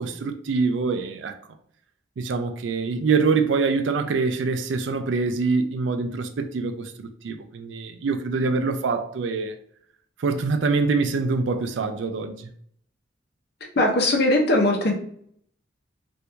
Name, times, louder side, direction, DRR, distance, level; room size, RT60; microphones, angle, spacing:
voice 1, 0.0-1.3 2.2-9.5 10.2-12.5, right 4 dB, 75° right, 0.4 m, -25 dB
voice 2, 13.8-14.9, left 1 dB, 60° left, 0.8 m, -19 dB
3.0 x 2.6 x 3.3 m
head